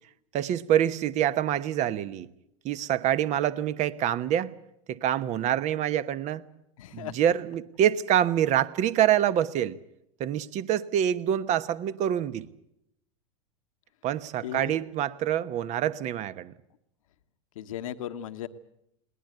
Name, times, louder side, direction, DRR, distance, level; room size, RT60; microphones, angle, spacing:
voice 1, 0.3-2.3 2.6-4.5 4.9-6.4 6.9-9.8 10.2-12.5 14.0-16.5, right 10 dB, 40° right, 1.1 m, -26 dB
voice 2, 6.8-7.2 14.4-14.8 17.5-18.5, left 11 dB, 75° left, 1.2 m, -36 dB
21.5 x 19.0 x 8.0 m
hypercardioid pair, 100°, 18 cm